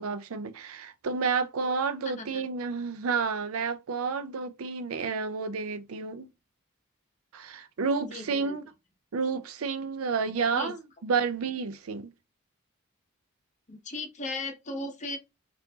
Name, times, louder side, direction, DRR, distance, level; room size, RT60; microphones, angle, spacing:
voice 1, 0.0-6.3 7.3-8.6 9.1-12.1, right 5 dB, 75° right, 0.5 m, -30 dB
voice 2, 2.0-2.5 8.0-8.6 10.5-10.7 13.7-15.2, left 2 dB, 35° left, 0.8 m, -37 dB
4.5 x 2.5 x 2.7 m
head